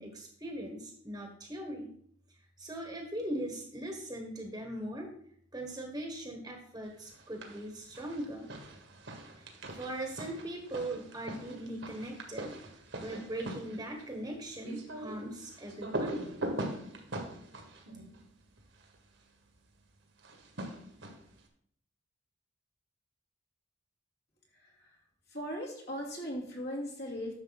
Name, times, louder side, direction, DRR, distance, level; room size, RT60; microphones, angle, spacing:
voice 1, 0.0-1.9 2.6-5.1 5.5-8.5 9.4-12.6 13.0-16.2, right 1 dB, 15° right, 2 dB, 1.4 m, -40 dB
sound 1, 7.1-7.7 7.9-19.0 20.2-21.4, right 1 dB, 60° right, 1.7 m, -42 dB
voice 2, 24.5-25.0 25.3-27.3, equal, 55° left, -1 dB, 2.7 m, -39 dB
10.5 x 6.9 x 4.1 m, 0.64 s
head